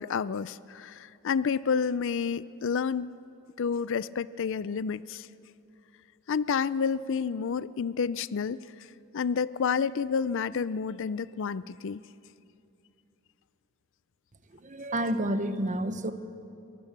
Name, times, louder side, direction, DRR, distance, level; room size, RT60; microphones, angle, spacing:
voice 1, 0.0-3.1 3.6-5.3 6.3-8.6 9.1-12.0, left 6 dB, 60° left, 18 dB, 0.4 m, -29 dB
voice 2, 14.6-16.1, right 1 dB, 35° right, 10 dB, 1.0 m, -29 dB
22.5 x 19.5 x 7.4 m, 2.8 s
head